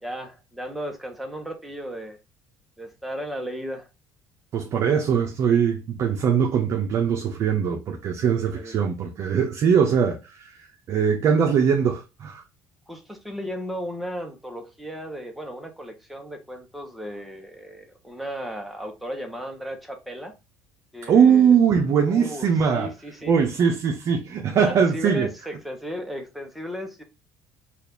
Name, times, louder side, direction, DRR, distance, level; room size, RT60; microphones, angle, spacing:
voice 1, 0.0-2.2 2.8-3.9 8.4-8.8 12.9-20.3 20.9-21.6 22.1-22.5 22.7-23.3 24.6-27.0, equal, ahead, 0.9 m, -35 dB
voice 2, 4.5-10.4 10.9-12.4 21.1-22.9 23.3-25.3, right 7 dB, 50° right, 0.7 m, -21 dB
4.2 x 2.5 x 3.3 m
cardioid pair, 105°, 6 cm